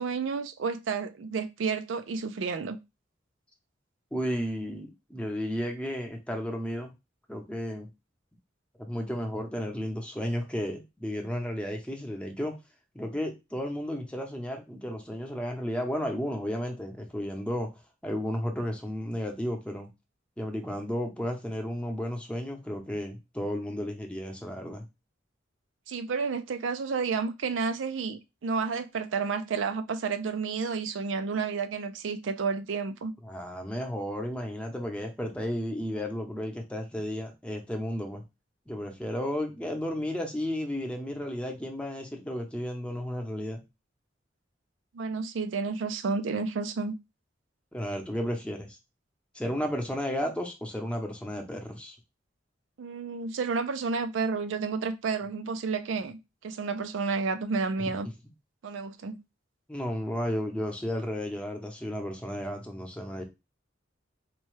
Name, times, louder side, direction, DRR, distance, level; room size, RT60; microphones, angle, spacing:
voice 1, 0.0-2.8 25.9-33.1 44.9-46.9 52.8-58.1 58.6-59.2, right 5 dB, 85° right, 0.4 m, -31 dB
voice 2, 4.1-6.9 7.3-7.9 8.8-12.6 12.9-17.7 18.0-19.9 20.4-24.8 33.2-38.2 38.7-43.6 47.7-48.8 49.3-52.0 59.7-63.2, equal, 5° left, 0.7 m, -33 dB
4.1 x 2.3 x 3.1 m
head